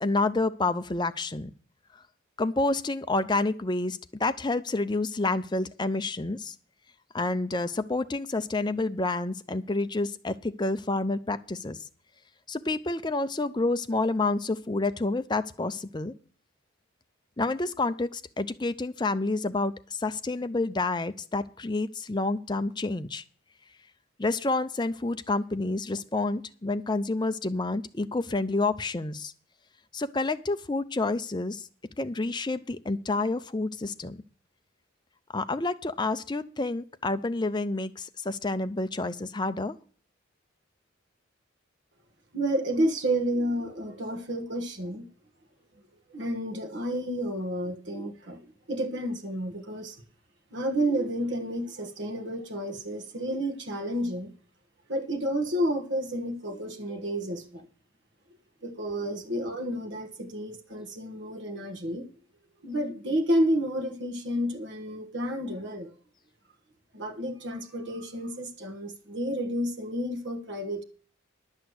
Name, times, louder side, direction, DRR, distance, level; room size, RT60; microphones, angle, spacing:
voice 1, 0.0-1.5 2.4-6.5 7.1-11.8 12.5-16.1 17.4-23.2 24.2-29.3 29.9-31.7 32.0-34.2 35.3-39.8, left 2 dB, 20° left, 0.5 m, -29 dB
voice 2, 42.3-45.1 46.1-50.0 50.5-54.3 54.9-57.7 58.6-62.0 62.6-65.9 66.9-70.8, right 1 dB, 60° right, 1.4 m, -30 dB
11.5 x 6.4 x 7.9 m
head